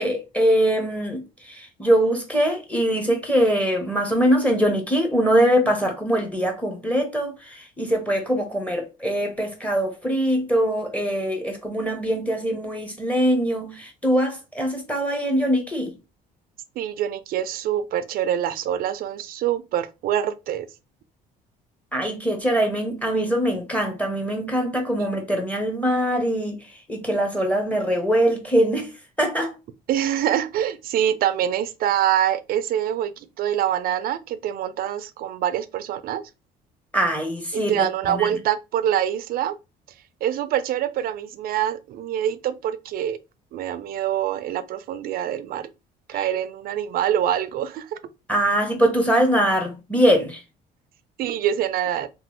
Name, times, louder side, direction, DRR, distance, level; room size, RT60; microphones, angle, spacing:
voice 1, 0.0-15.9 21.9-28.9 29.2-29.5 36.9-38.3 46.1-46.2 48.3-50.4, equal, 10° left, 0.8 m, -22 dB
voice 2, 16.8-20.7 25.0-25.1 29.9-36.2 37.5-39.6 40.2-43.2 43.5-45.7 46.1-48.0 51.2-52.1, right 10 dB, 60° right, 0.4 m, -25 dB
3.0 x 2.2 x 3.0 m
cardioid pair, 110°, 17 cm